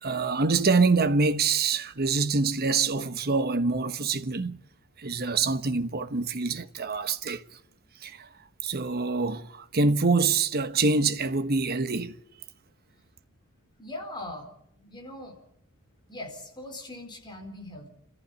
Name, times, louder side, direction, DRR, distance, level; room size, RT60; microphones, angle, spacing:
voice 1, 0.0-4.6 5.0-7.4 8.0-8.3 8.6-12.2, right 4 dB, 45° right, 1.1 m, -25 dB
voice 2, 13.8-15.4 16.1-17.9, left 1 dB, 20° left, 4.3 m, -41 dB
28.5 x 14.5 x 9.5 m
head